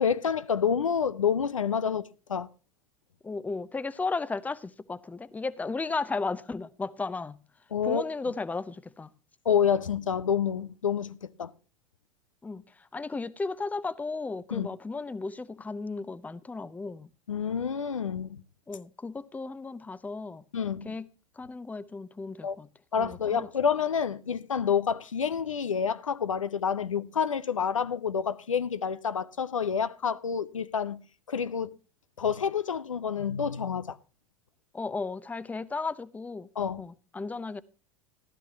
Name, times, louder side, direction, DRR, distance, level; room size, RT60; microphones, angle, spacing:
voice 1, 0.0-2.5 7.7-8.0 9.5-11.5 14.5-14.7 17.3-18.4 20.5-21.0 22.4-22.6 22.9-31.0 31.3-31.7 32.2-34.0 36.6-36.8, left 7 dB, 80° left, 0.7 m, -28 dB
voice 2, 3.2-7.4 7.8-9.1 12.4-12.6 12.9-17.1 18.7-20.4 20.8-21.1 21.4-22.7 23.0-23.5 34.7-36.5 36.8-37.6, left 3 dB, 10° left, 0.7 m, -34 dB
15.5 x 12.5 x 2.8 m
figure-of-eight pair, 85°, 17 cm